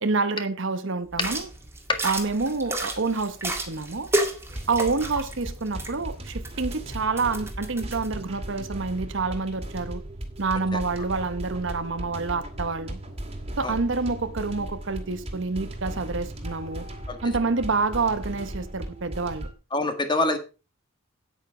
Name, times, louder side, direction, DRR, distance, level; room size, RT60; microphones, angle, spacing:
voice 1, 0.0-1.5 2.0-4.1 4.7-10.0 10.4-13.0 13.6-16.9 17.2-19.5, right 4 dB, 60° right, 0.9 m, -27 dB
sound 1, 1.1-8.1, right 2 dB, 10° right, 2.0 m, -32 dB
sound 2, 4.5-19.5, right 1 dB, 30° right, 2.2 m, -37 dB
voice 2, 19.7-20.4, left 2 dB, 20° left, 1.8 m, -25 dB
9.2 x 9.2 x 4.8 m
head